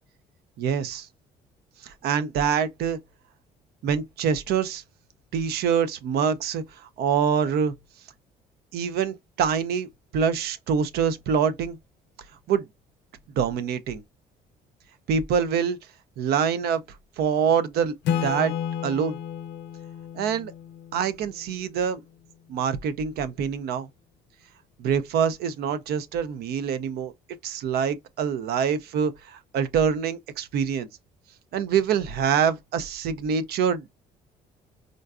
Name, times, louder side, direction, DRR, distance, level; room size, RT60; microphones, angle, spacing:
voice 1, 0.6-1.1 1.8-3.0 3.8-4.8 5.3-7.7 8.7-9.9 10.1-11.8 12.5-12.6 13.4-14.0 15.1-15.8 16.2-16.8 17.2-17.9 18.2-18.5 18.8-19.2 20.1-20.5 20.9-22.0 22.5-23.9 24.8-27.1 27.4-30.9 31.5-33.8, right 7 dB, 70° right, 0.5 m, -25 dB
Acoustic guitar / Strum, 18.1-21.6, left 9 dB, 85° left, 0.5 m, -32 dB
3.7 x 2.2 x 2.3 m
cardioid pair, 110°, 17 cm